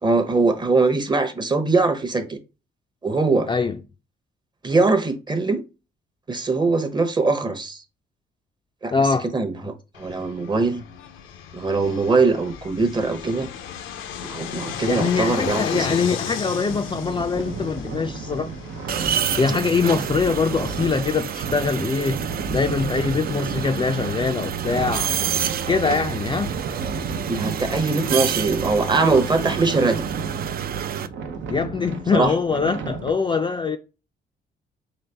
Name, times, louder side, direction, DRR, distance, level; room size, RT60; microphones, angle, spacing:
voice 1, 0.0-2.4 3.0-3.5 4.6-5.6 6.3-7.8 8.8-8.9 9.3-10.8 11.5-13.5 14.3-15.9 27.3-30.1 32.1-32.3, right 3 dB, 20° right, 0.8 m, -21 dB
voice 2, 3.5-3.8 8.9-9.3 14.9-18.5 19.4-22.2 22.5-25.1 25.7-26.5 31.5-33.8, left 5 dB, 25° left, 0.4 m, -23 dB
Fixed-wing aircraft airplane, 9.9-19.2, left 8 dB, 85° left, 0.6 m, -34 dB
sound 1, 16.7-33.1, right 4 dB, 75° right, 0.8 m, -33 dB
sound 2, 18.9-31.1, right 8 dB, 50° right, 0.4 m, -28 dB
4.0 x 3.4 x 3.3 m
cardioid pair, 90°, 20 cm